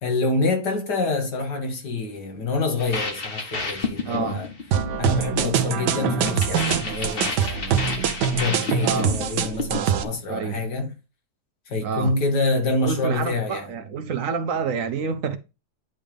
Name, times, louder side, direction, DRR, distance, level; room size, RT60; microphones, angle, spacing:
voice 1, 0.0-4.5 5.0-10.9 11.7-13.7, left 3 dB, 80° left, 2.2 m, -26 dB
sound 1, 2.8-10.1, left 4 dB, 35° left, 1.5 m, -31 dB
voice 2, 4.0-4.4 8.8-9.2 10.3-10.6 11.8-12.1 12.8-15.4, right 5 dB, 60° right, 1.0 m, -28 dB
sound 2, 4.7-10.0, right 9 dB, 90° right, 1.4 m, -24 dB
10.0 x 3.5 x 5.1 m
omnidirectional pair, 1.8 m